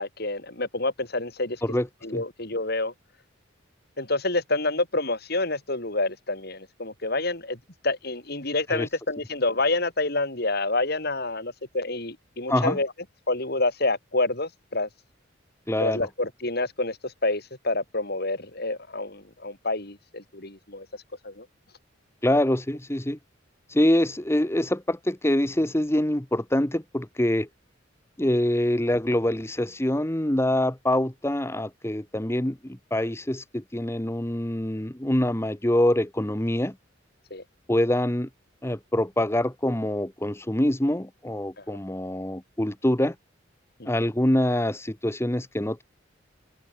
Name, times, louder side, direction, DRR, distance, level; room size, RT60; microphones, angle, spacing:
voice 1, 0.0-1.6 2.0-2.9 4.0-12.9 13.3-14.9 15.8-21.5 37.3-37.4 41.6-41.8 43.8-43.9, left 2 dB, 55° left, 5.8 m, -28 dB
voice 2, 15.7-16.0 22.2-23.2 23.7-27.5 28.2-36.7 37.7-38.3 38.6-43.1 43.8-45.8, left 1 dB, 15° left, 1.3 m, -25 dB
head